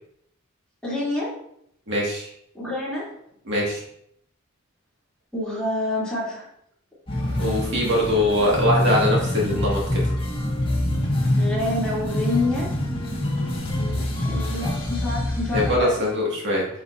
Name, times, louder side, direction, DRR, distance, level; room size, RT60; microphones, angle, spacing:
voice 1, 0.8-1.3 2.5-3.1 5.3-6.5 11.4-12.7 13.8-16.0, left 2 dB, 5° left, -9 dB, 3.0 m, -28 dB
voice 2, 1.9-2.3 3.5-3.8 7.4-10.0 15.5-16.7, left 1 dB, 55° right, -3 dB, 2.0 m, -22 dB
sound 1, 7.1-15.8, left 1 dB, 25° left, 1.7 m, -25 dB
8.8 x 5.5 x 2.7 m, 0.72 s
head